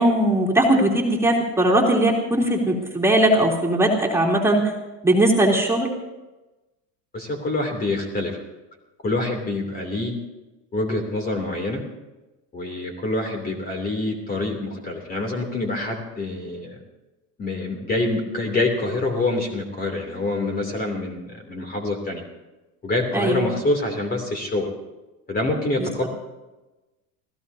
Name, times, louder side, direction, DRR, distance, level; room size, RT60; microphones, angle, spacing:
voice 1, 0.0-4.7 5.0-5.9 23.1-23.5 25.8-25.9, right 1 dB, 5° right, -3 dB, 3.3 m, -19 dB
voice 2, 7.1-8.4 9.0-10.1 10.7-11.8 12.5-16.8 17.4-22.2 22.8-24.7 25.3-26.1, left 2 dB, 25° left, 3 dB, 2.9 m, -26 dB
28.0 x 16.5 x 2.8 m, 1.1 s
supercardioid pair, 125°, 38 cm